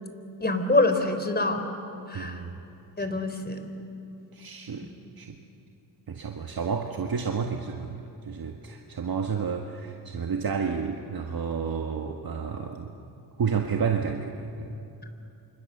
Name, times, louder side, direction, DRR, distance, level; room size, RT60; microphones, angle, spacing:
voice 1, 0.4-1.7 2.1-2.4 3.0-3.7, left 2 dB, 20° left, 7 dB, 4.0 m, -25 dB
voice 2, 2.1-2.6 4.3-4.9 5.2-5.4 6.1-12.9 13.4-14.7, right 6 dB, 55° right, 3 dB, 1.7 m, -31 dB
29.0 x 26.5 x 6.8 m, 2.7 s
cardioid pair, 65°, 43 cm